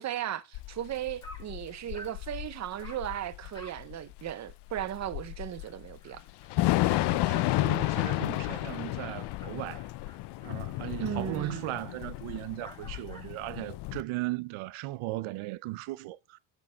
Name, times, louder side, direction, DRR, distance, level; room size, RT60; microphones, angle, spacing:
voice 1, 0.0-6.2 11.0-11.6, right 11 dB, 35° right, 0.6 m, -36 dB
Thunder / Rain, 0.5-14.0, left 18 dB, 60° left, 0.5 m, -32 dB
Dog, 0.8-0.9 1.2-1.5 1.9-2.2 2.8-3.1 3.5-3.9 4.2-4.3 4.7-4.8 5.2-5.3 5.6-13.4, equal, 10° left, 1.5 m, -53 dB
voice 2, 6.9-9.9 10.4-16.4, right 19 dB, 85° right, 0.7 m, -37 dB
8.6 x 7.0 x 4.3 m
cardioid pair, 160°, 48 cm